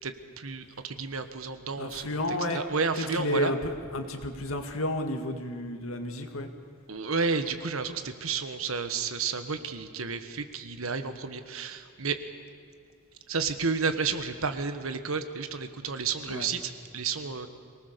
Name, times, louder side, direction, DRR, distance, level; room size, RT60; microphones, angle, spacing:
voice 1, 0.0-2.1 2.5-3.5 6.9-12.2 13.3-17.5, right 5 dB, 80° right, 9 dB, 1.4 m, -31 dB
voice 2, 1.8-2.6 3.0-6.5 16.3-16.5, left 1 dB, 80° left, 5 dB, 2.0 m, -31 dB
24.0 x 19.0 x 6.9 m, 2.4 s
head